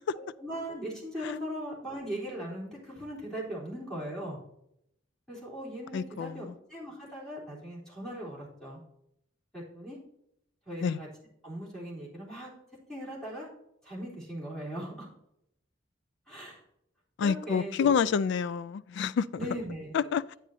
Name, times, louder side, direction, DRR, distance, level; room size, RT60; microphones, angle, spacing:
voice 1, 0.1-4.4 5.3-8.8 9.5-10.0 10.7-11.1 11.4-12.5 12.9-13.5 13.8-15.1 16.3-16.6 17.2-17.9 19.3-19.9, equal, 5° left, 3.6 m, -39 dB
voice 2, 5.9-6.5 10.8-11.0 17.2-19.3 19.9-20.4, left 6 dB, 65° left, 0.3 m, -28 dB
9.8 x 8.7 x 2.7 m
head